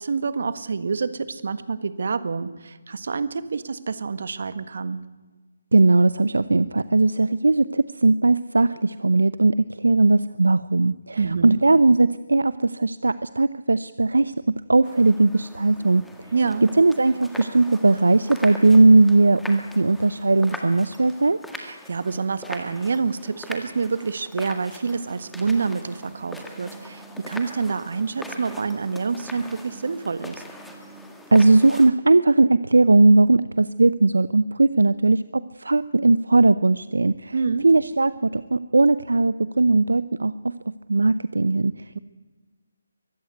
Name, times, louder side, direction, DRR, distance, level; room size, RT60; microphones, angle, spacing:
voice 1, 0.0-5.0 11.2-11.6 16.3-16.6 21.6-30.4 37.3-37.7 41.9-42.0, right 5 dB, 55° right, 14 dB, 1.5 m, -27 dB
voice 2, 5.7-16.0 16.8-21.4 31.3-37.3 37.6-40.5 40.9-41.8, right 3 dB, 75° right, 16 dB, 0.7 m, -18 dB
sound 1, 14.8-31.9, left 1 dB, 5° left, 1.8 m, -41 dB
23.0 x 14.5 x 9.4 m, 1.3 s
figure-of-eight pair, 150°, 0 cm